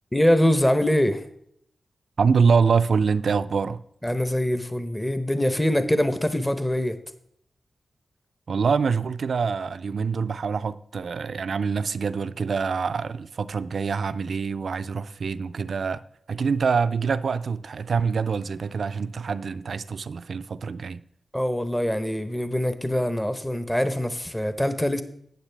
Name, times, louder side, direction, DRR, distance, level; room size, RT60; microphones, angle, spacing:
voice 1, 0.1-1.3 4.0-7.0 21.3-25.0, left 1 dB, 15° left, 0.8 m, -23 dB
voice 2, 2.2-3.8 8.5-16.0 16.3-21.0, right 5 dB, 75° right, 0.4 m, -25 dB
11.5 x 8.9 x 3.4 m
cardioid pair, 40°, 0 cm